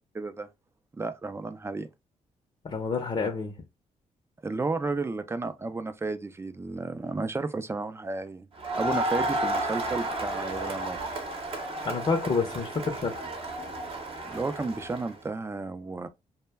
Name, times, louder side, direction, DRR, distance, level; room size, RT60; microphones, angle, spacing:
voice 1, 0.1-0.5 0.9-1.9 4.4-8.5 8.7-11.0 14.2-16.1, right 3 dB, 20° right, 0.4 m, -32 dB
voice 2, 2.6-3.6 11.8-13.2, left 4 dB, 40° left, 0.6 m, -28 dB
Crowd, 8.6-15.1, right 1 dB, 40° right, 0.8 m, -32 dB
2.1 x 2.1 x 3.3 m
cardioid pair, 70°, 14 cm